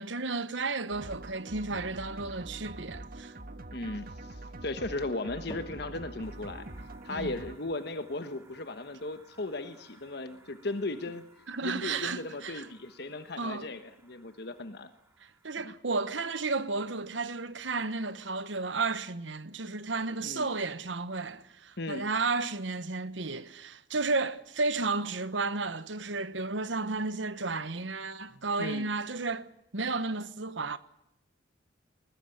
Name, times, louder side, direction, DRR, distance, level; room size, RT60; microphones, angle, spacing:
voice 1, 0.0-3.3 7.1-7.3 11.5-12.7 13.4-13.7 15.4-30.8, right 3 dB, 75° right, 1.2 m, -33 dB
sound 1, 0.9-7.6, right 2 dB, 50° right, 1.4 m, -44 dB
voice 2, 3.7-6.6 7.0-11.2 11.6-14.9 15.6-15.7 20.2-20.5 21.8-22.1 28.6-28.9, left 2 dB, 60° left, 1.3 m, -37 dB
sound 2, 5.5-21.8 22.1-22.7 23.3-23.4 24.2-24.3, left 1 dB, 20° left, 2.6 m, -58 dB
sound 3, 6.2-15.9, right 2 dB, 15° right, 2.6 m, -61 dB
21.0 x 20.5 x 9.2 m
head